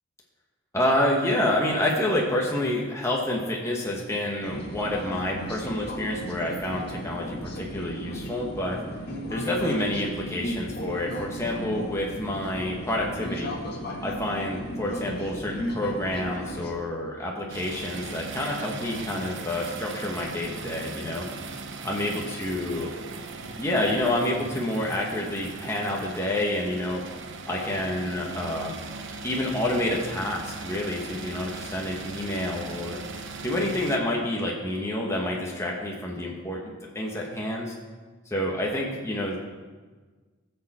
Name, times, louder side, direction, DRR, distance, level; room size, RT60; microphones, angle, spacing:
voice 1, 0.7-8.8 9.3-13.5 14.0-21.3 21.8-22.1 22.4-22.9 23.6-27.0 27.5-28.8 29.2-33.0 33.4-36.6 36.9-37.7 38.3-39.4, left 1 dB, 15° left, -2 dB, 1.4 m, -28 dB
sound 1, 4.4-16.7, equal, 55° left, 1.8 m, -35 dB
sound 2, 17.5-34.0, right 3 dB, 65° right, 1.0 m, -39 dB
20.0 x 6.7 x 4.3 m, 1.4 s
head